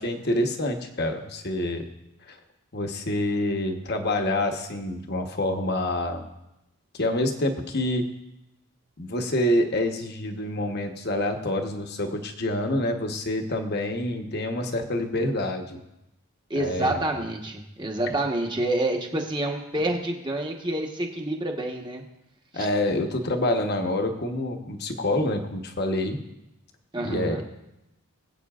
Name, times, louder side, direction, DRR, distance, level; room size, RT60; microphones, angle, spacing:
voice 1, 0.0-1.8 2.3-2.4 2.7-6.2 6.9-8.1 9.0-15.8 16.5-17.0 22.5-26.2 27.0-27.4, left 1 dB, 45° left, 4 dB, 1.1 m, -27 dB
voice 2, 16.5-22.0 22.5-22.7 26.9-27.4, right 1 dB, 20° right, 2 dB, 1.2 m, -28 dB
23.5 x 8.3 x 2.4 m, 0.91 s
head